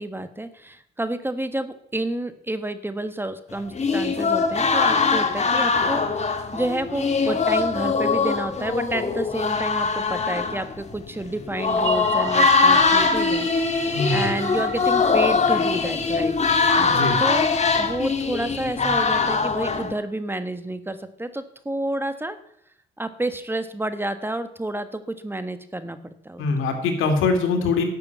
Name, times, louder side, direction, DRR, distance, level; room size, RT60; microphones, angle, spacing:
voice 1, 0.0-16.4 17.2-22.4 23.0-26.5, right 1 dB, 10° right, 10 dB, 1.3 m, -30 dB
sound 1, 3.7-19.9, left 4 dB, 35° left, 1.7 m, -22 dB
sound 2, 11.7-16.2, right 11 dB, 85° right, 1.1 m, -33 dB
voice 2, 13.9-14.3 16.8-17.2 26.4-27.8, left 4 dB, 85° left, 5 dB, 2.5 m, -23 dB
12.0 x 6.8 x 9.2 m, 0.74 s
cardioid pair, 90°, 20 cm